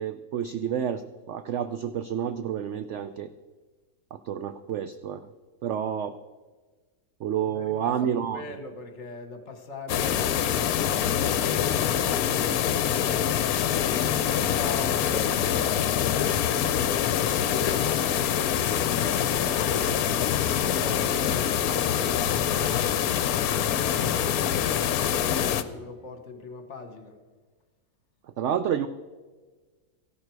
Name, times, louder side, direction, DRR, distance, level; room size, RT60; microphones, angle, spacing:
voice 1, 0.0-3.3 4.1-5.2 5.6-6.1 7.2-8.4 28.4-28.9, right 9 dB, 75° right, 11 dB, 0.6 m, -29 dB
voice 2, 7.5-10.4 14.3-18.6 19.3-27.1, left 3 dB, 45° left, 7 dB, 1.5 m, -41 dB
sound 1, 9.9-25.6, left 9 dB, 70° left, 1.1 m, -25 dB
14.5 x 11.5 x 4.6 m, 1.4 s
omnidirectional pair, 1.7 m